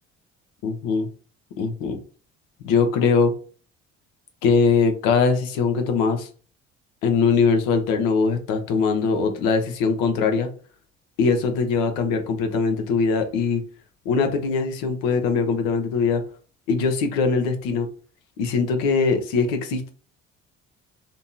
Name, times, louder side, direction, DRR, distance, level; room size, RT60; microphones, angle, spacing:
voice 1, 0.6-1.1 1.6-2.0 2.6-3.3 4.4-6.3 7.0-10.5 11.2-13.6 14.1-16.2 16.7-17.9 18.4-19.9, left 5 dB, 60° left, 6 dB, 0.7 m, -21 dB
2.8 x 2.6 x 2.3 m, 0.39 s
figure-of-eight pair, 50°, 36 cm